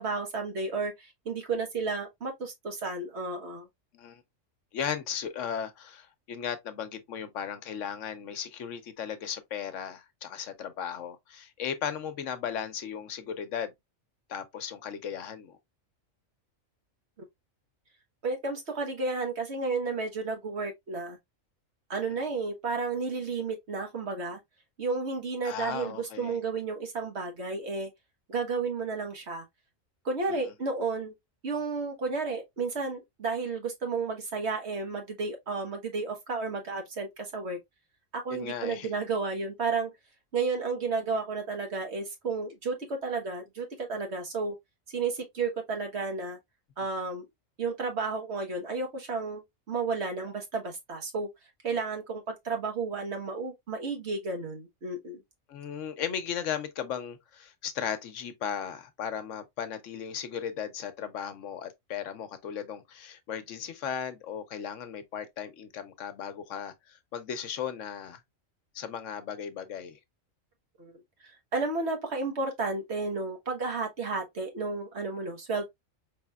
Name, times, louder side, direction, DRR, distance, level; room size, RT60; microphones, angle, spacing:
voice 1, 0.0-3.7 18.2-21.2 21.9-24.4 24.8-27.9 28.3-29.4 30.0-31.1 31.4-37.6 38.2-39.9 40.3-44.5 44.9-46.4 46.8-47.3 47.6-51.3 51.6-55.2 70.8-70.9 71.2-75.7, right 4 dB, 55° right, 1.4 m, -32 dB
voice 2, 4.7-13.7 14.3-15.6 25.4-26.4 30.3-30.4 38.3-38.9 55.5-68.2 68.7-70.0, left 8 dB, 70° left, 1.0 m, -36 dB
4.9 x 3.3 x 2.3 m
omnidirectional pair, 1.3 m